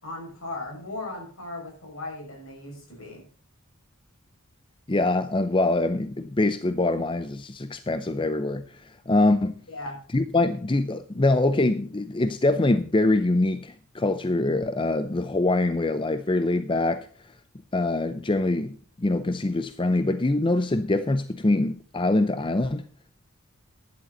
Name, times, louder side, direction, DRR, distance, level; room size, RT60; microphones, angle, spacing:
voice 1, 0.0-3.2 9.7-10.0, left 2 dB, 65° left, 6.3 m, -37 dB
voice 2, 4.9-9.6 10.1-17.1 17.7-22.8, left 2 dB, 20° left, 0.5 m, -24 dB
12.5 x 10.5 x 4.0 m
head